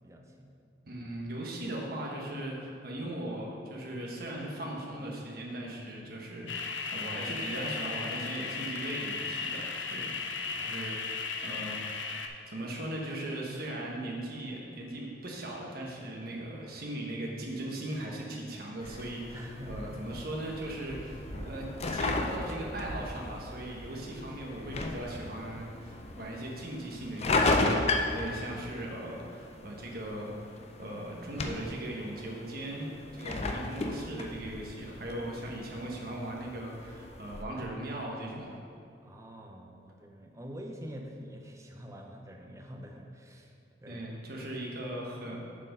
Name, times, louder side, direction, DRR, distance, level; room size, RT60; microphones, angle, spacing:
voice 1, 0.0-0.5 10.5-10.9 19.3-19.9 39.0-43.5 43.8-44.1, equal, 15° right, 2 dB, 0.6 m, -46 dB
voice 2, 0.8-12.0 12.5-27.7 28.1-30.3 30.8-38.6 43.9-45.4, right 1 dB, 55° right, -2 dB, 1.2 m, -39 dB
sound 1, 6.5-12.3, left 4 dB, 90° left, 0.6 m, -36 dB
sound 2, 18.8-37.4, left 2 dB, 35° left, 0.5 m, -35 dB
sound 3, 19.6-28.7, equal, 70° left, 1.7 m, -46 dB
7.3 x 4.5 x 5.3 m, 2.6 s
head